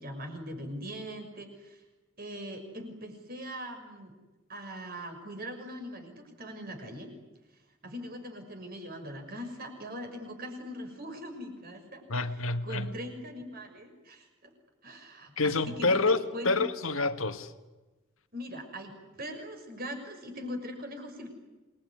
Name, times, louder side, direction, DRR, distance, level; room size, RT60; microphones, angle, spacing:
voice 1, 0.0-1.8 2.2-4.1 4.5-7.1 7.8-12.0 12.6-14.3 14.8-16.6 18.3-21.3, equal, 45° right, 6.2 m, -41 dB
voice 2, 12.1-12.9 15.4-16.2 16.4-17.5, left 3 dB, 80° left, 1.8 m, -27 dB
27.5 x 21.5 x 9.8 m
head